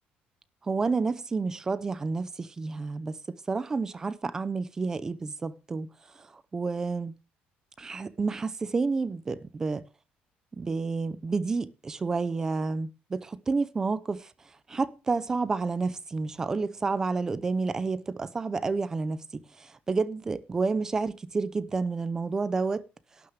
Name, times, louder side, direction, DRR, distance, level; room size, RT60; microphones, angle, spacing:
voice 1, 0.6-3.2 3.5-5.9 6.2-6.3 6.5-7.1 7.8-9.9 10.5-14.3 14.7-22.8, right 4 dB, 15° right, 0.6 m, -30 dB
12.0 x 6.4 x 8.1 m
cardioid pair, 180°, 4 cm